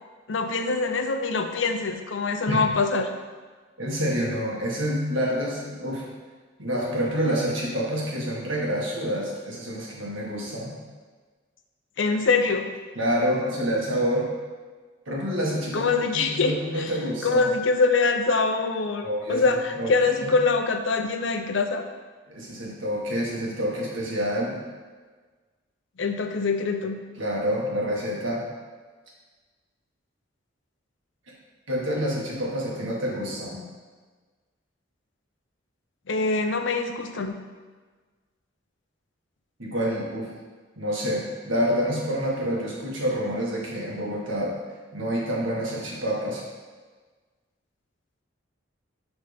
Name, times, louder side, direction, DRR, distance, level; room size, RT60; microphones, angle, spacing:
voice 1, 0.3-3.1 12.0-12.7 15.7-16.9 17.2-21.8 26.0-27.0 36.1-37.4, left 4 dB, 75° left, 6 dB, 0.6 m, -24 dB
voice 2, 3.8-6.0 6.6-10.8 13.0-14.3 15.1-17.5 19.0-19.5 19.8-20.4 22.3-24.6 27.2-28.4 31.7-33.6 39.6-40.3 40.8-44.6 44.9-46.4, equal, 85° right, -4 dB, 1.8 m, -27 dB
10.5 x 4.0 x 3.5 m, 1.4 s
head